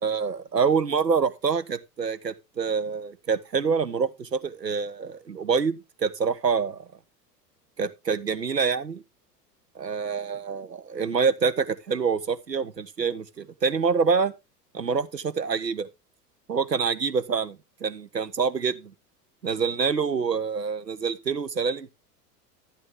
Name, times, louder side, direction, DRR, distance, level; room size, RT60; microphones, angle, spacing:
voice 1, 0.0-6.8 7.8-9.0 9.8-14.3 14.7-15.9 16.5-18.9 19.4-21.9, right 5 dB, 90° right, 0.9 m, -26 dB
11.5 x 8.5 x 3.5 m
figure-of-eight pair, 80°, 48 cm